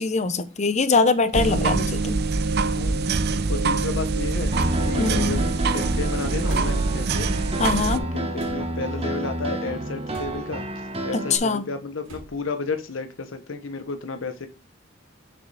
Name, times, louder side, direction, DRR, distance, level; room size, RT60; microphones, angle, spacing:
voice 1, 0.0-2.2 5.0-5.4 7.6-8.0 11.1-11.7, left 4 dB, 35° left, 0.8 m, -23 dB
sound 1, 1.3-8.0, right 3 dB, 55° right, 0.6 m, -24 dB
voice 2, 1.5-1.9 2.7-4.6 4.8-7.4 7.9-14.5, left 4 dB, 85° left, 0.9 m, -32 dB
Piano, 4.5-11.4, right 1 dB, 30° right, 1.2 m, -30 dB
sound 2, 6.5-7.0 8.4-8.9 10.1-10.6 12.0-12.5, equal, 75° right, 2.8 m, -43 dB
6.5 x 6.4 x 3.4 m
head